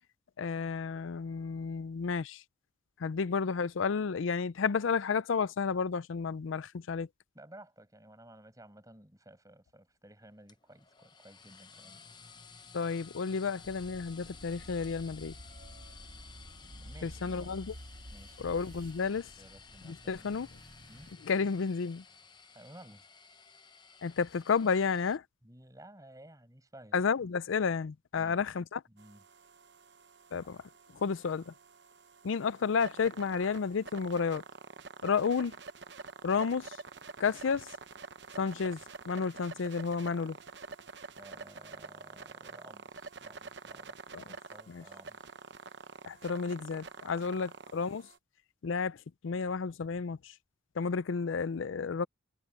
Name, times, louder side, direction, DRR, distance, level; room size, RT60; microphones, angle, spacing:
voice 1, 0.4-2.4 3.0-7.1 12.7-15.3 17.0-17.7 18.4-19.3 19.8-20.5 21.2-22.0 24.0-25.2 26.9-28.8 30.3-31.5 32.2-34.4 35.0-35.5 36.2-36.8 37.2-37.8 38.4-38.8 39.1-40.4 44.1-44.2 44.7-44.8 46.0-48.1 48.6-50.3 50.8-52.1, left 5 dB, 75° left, 0.5 m, -31 dB
voice 2, 7.3-12.1 16.6-17.7 18.1-20.4 20.9-21.1 22.5-23.1 25.4-27.0 28.2-28.4 28.9-29.2 41.2-45.3, right 1 dB, 15° right, 7.7 m, -55 dB
sound 1, 10.5-25.2, left 5 dB, 20° left, 0.9 m, -55 dB
sound 2, 13.6-21.1, equal, 75° right, 3.0 m, -51 dB
sound 3, 29.0-48.2, right 4 dB, 55° right, 0.9 m, -48 dB
head